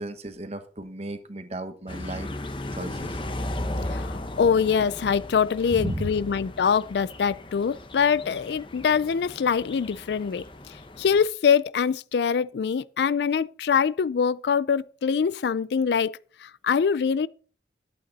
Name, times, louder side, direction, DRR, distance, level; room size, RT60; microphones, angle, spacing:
voice 1, 0.0-2.3 2.7-3.2 5.7-6.1, right 1 dB, 35° right, 1.1 m, -34 dB
sound 1, 1.9-11.2, left 1 dB, 30° left, 0.9 m, -36 dB
voice 2, 3.9-10.5 11.0-17.3, left 6 dB, 70° left, 0.4 m, -24 dB
11.5 x 8.5 x 4.1 m
head